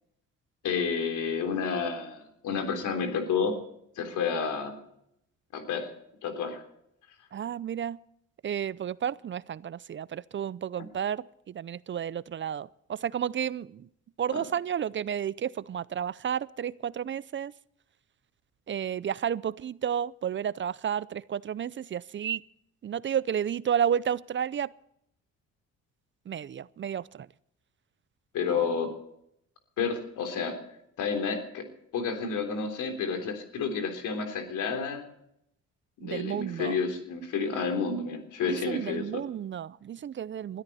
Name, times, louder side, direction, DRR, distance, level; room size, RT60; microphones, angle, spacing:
voice 1, 0.6-3.5 4.0-4.8 5.5-5.9 6.2-6.6 14.3-14.4 28.3-28.9 29.8-30.6 31.0-31.7 31.9-35.0 36.0-39.2, left 5 dB, 85° left, 3.5 m, -30 dB
voice 2, 7.3-8.0 8.4-13.9 14.2-17.5 18.7-22.4 22.8-24.7 26.3-27.3 28.5-28.6 36.0-36.8 38.5-40.6, right 9 dB, 40° right, 0.5 m, -32 dB
21.0 x 13.0 x 4.2 m
cardioid pair, 90°, 30 cm